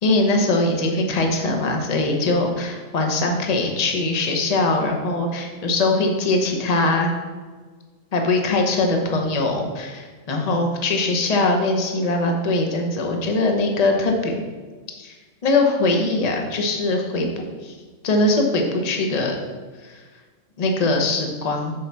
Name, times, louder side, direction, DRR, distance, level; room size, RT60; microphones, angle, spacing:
voice 1, 0.0-7.1 8.1-14.4 15.0-15.1 15.4-17.3 17.6-17.7 18.0-19.4 19.8-20.0 20.6-21.7, left 2 dB, 35° left, 2 dB, 0.9 m, -21 dB
6.7 x 4.6 x 5.6 m, 1.4 s
omnidirectional pair, 1.4 m